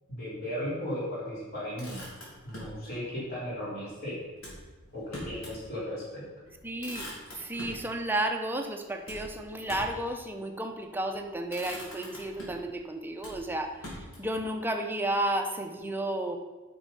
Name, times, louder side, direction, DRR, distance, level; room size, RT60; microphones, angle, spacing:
voice 1, 0.1-2.0 2.4-4.2 4.9-6.2, equal, 45° left, -7 dB, 3.5 m, -36 dB
Motor vehicle (road), 1.5-2.8 4.4-5.6 6.0-6.1 6.4-7.8 9.1-10.1 10.9-11.2 11.5-12.7 13.2-14.4, equal, 85° left, 3.2 m, -43 dB
voice 2, 6.6-7.1 7.3-16.4, right 1 dB, 10° right, 4 dB, 0.7 m, -32 dB
8.8 x 6.1 x 5.5 m, 1.2 s
head